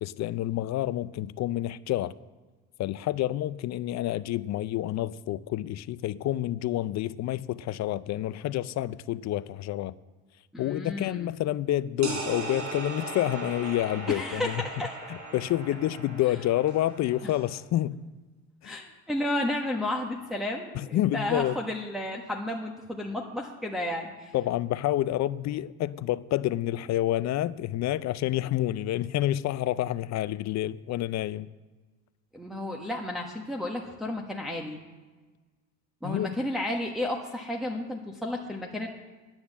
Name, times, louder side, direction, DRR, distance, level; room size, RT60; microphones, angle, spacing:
voice 1, 0.0-2.1 2.8-9.9 10.6-14.6 15.1-18.0 18.6-18.8 20.7-21.6 24.3-31.5 36.0-36.3, left 14 dB, 45° left, 0.5 m, -28 dB
voice 2, 10.5-11.3 14.1-15.0 18.6-24.3 32.3-34.8 36.0-38.9, left 1 dB, ahead, 1.3 m, -32 dB
sound 1, 12.0-17.6, right 3 dB, 45° right, 4.2 m, -38 dB
9.8 x 8.7 x 7.2 m
supercardioid pair, 85°, 40 cm